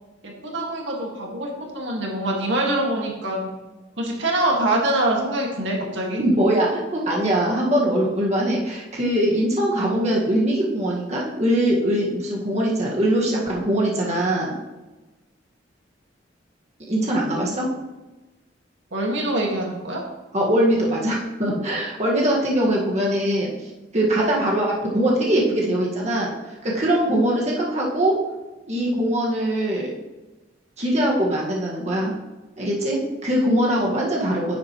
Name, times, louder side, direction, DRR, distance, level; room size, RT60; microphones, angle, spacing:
voice 1, 0.2-3.5 4.0-6.2 18.9-20.0, right 1 dB, 80° right, -1 dB, 2.0 m, -24 dB
voice 2, 6.2-14.6 16.9-17.7 20.3-28.1 28.7-29.9 30.8-32.1 32.6-34.6, right 1 dB, 40° right, -4 dB, 1.8 m, -22 dB
10.5 x 8.7 x 3.1 m, 1.1 s
head